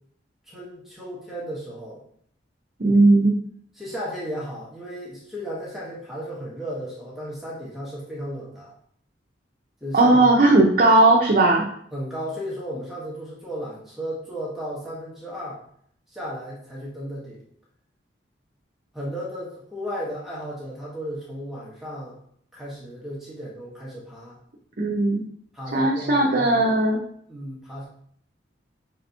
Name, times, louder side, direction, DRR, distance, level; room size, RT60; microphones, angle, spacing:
voice 1, 0.5-2.0 3.8-8.7 9.8-10.4 11.9-15.6 16.1-17.5 18.9-22.2 22.5-24.4 25.5-26.7 27.3-27.9, equal, ahead, -6 dB, 1.1 m, -34 dB
voice 2, 2.8-3.3 9.9-11.6 24.8-25.2 25.7-27.0, right 2 dB, 50° right, -2 dB, 0.6 m, -17 dB
5.6 x 3.3 x 2.7 m, 0.65 s
head